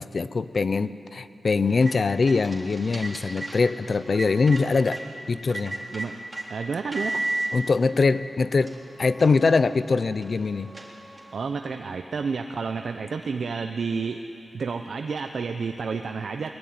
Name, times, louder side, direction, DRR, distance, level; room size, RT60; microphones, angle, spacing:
voice 1, 0.0-5.0 5.3-5.8 7.5-10.7, left 4 dB, 50° left, 14 dB, 0.7 m, -23 dB
sound 1, 1.6-5.0 5.5-6.5 6.9-7.5 8.2-8.3 8.6-11.4, right 2 dB, 20° right, 3.7 m, -35 dB
voice 2, 6.5-7.2 11.3-14.2 14.5-16.5, right 5 dB, 70° right, 5 dB, 0.8 m, -30 dB
22.0 x 22.0 x 9.6 m, 2.9 s
wide cardioid pair, 100°, 0 cm